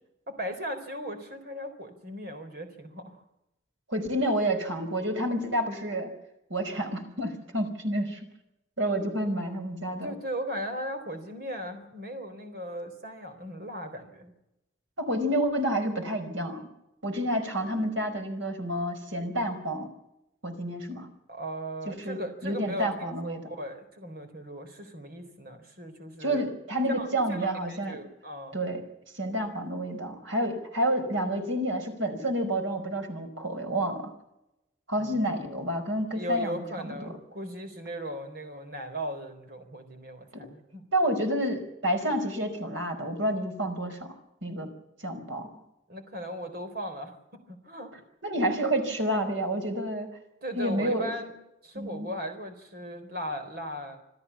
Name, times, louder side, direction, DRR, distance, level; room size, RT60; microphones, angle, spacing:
voice 1, 0.3-3.2 9.0-9.1 10.0-14.3 21.3-26.4 26.9-28.6 35.0-35.7 36.1-40.8 45.9-47.9 50.4-51.4 51.6-54.0, equal, 50° right, 6 dB, 4.0 m, -38 dB
voice 2, 3.9-6.1 6.5-8.2 8.8-10.1 15.0-16.7 17.0-19.9 20.4-21.1 21.9-23.4 26.2-28.0 28.5-28.8 29.1-34.1 34.9-37.1 40.3-40.5 40.9-44.1 44.4-44.7 45.0-45.5 48.2-50.1 50.5-51.1 51.7-52.1, right 1 dB, 85° right, 5 dB, 5.2 m, -29 dB
27.0 x 14.5 x 7.2 m, 0.88 s
head